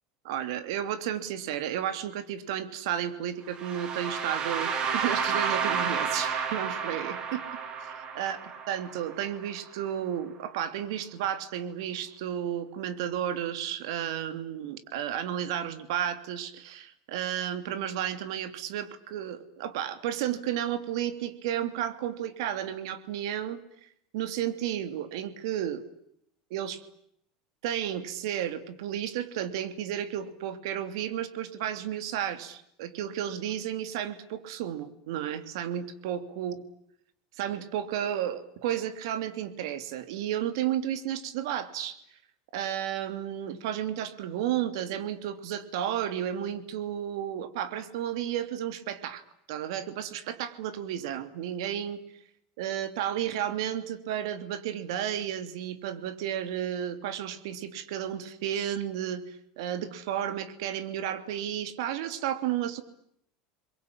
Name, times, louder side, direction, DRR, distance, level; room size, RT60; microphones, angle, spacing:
voice 1, 0.2-7.4 8.1-8.4 8.7-25.8 26.5-26.8 27.6-36.6 37.3-42.0 42.5-49.2 49.5-52.0 52.6-62.8, right 10 dB, 80° right, 11 dB, 2.9 m, -32 dB
sound 1, 3.5-9.5, right 6 dB, 30° right, 3.5 m, -31 dB
29.5 x 22.5 x 8.8 m, 0.72 s
cardioid pair, 160°, 3 cm